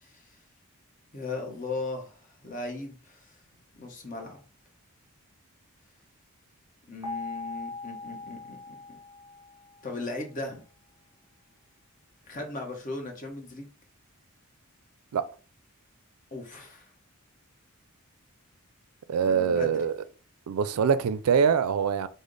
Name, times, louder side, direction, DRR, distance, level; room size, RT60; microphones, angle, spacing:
voice 1, 1.1-3.4 3.8-4.4 6.9-9.0 9.8-10.6 12.3-13.7 16.3-16.9 19.2-19.8, left 2 dB, 35° left, 0.9 m, -37 dB
sound 1, 7.0-10.0, left 3 dB, 25° right, 0.7 m, -40 dB
voice 2, 19.1-20.0 20.5-22.1, right 6 dB, 85° right, 0.4 m, -24 dB
5.1 x 2.1 x 3.8 m
head